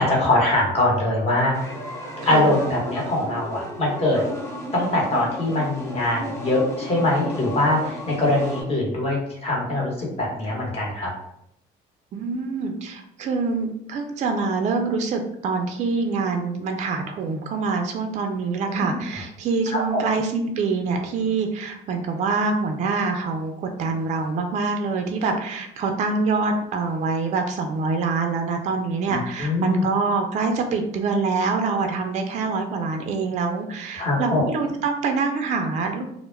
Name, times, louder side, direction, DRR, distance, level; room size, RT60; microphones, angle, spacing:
voice 1, 0.0-1.7 2.3-4.2 4.7-11.1 18.7-19.0 19.9-20.0 29.1-29.8 34.0-34.4, left 1 dB, 35° left, -4 dB, 1.0 m, -22 dB
sound 1, 1.5-8.6, equal, 15° left, 0.8 m, -34 dB
voice 2, 12.1-36.1, right 4 dB, 45° right, 4 dB, 0.4 m, -25 dB
2.2 x 2.0 x 3.1 m, 0.78 s
cardioid pair, 110°, 17 cm